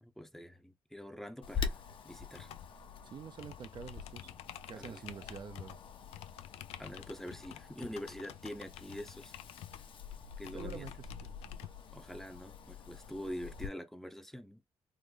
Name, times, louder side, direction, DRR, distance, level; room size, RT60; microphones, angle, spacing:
voice 1, 0.0-1.8 2.0-2.5 4.8-5.0 6.8-9.4 10.4-10.9 11.9-14.6, equal, 5° left, 0.6 m, -45 dB
Wind, 1.4-13.7, left 6 dB, 55° left, 0.8 m, -45 dB
sound 1, 2.3-11.7, left 13 dB, 85° left, 0.4 m, -51 dB
voice 2, 3.0-4.3 4.7-5.8 10.5-11.4 11.6-11.8, right 7 dB, 45° right, 0.4 m, -47 dB
3.6 x 2.1 x 3.2 m
cardioid pair, 80°, 10 cm